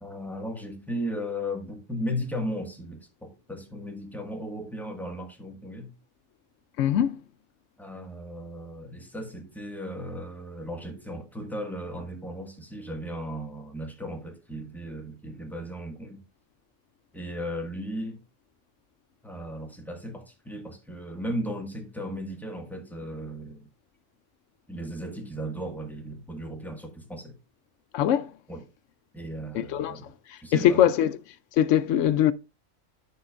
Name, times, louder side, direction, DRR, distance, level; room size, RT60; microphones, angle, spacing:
voice 1, 0.0-5.9 7.8-16.2 17.1-18.2 19.2-23.7 24.7-27.3 28.5-28.6 29.1-30.1 30.4-30.9, equal, ahead, 1.6 m, -36 dB
voice 2, 6.8-7.2 27.9-28.3 29.5-31.2 31.5-32.3, left 10 dB, 85° left, 1.0 m, -23 dB
10.0 x 6.6 x 2.5 m
omnidirectional pair, 1.3 m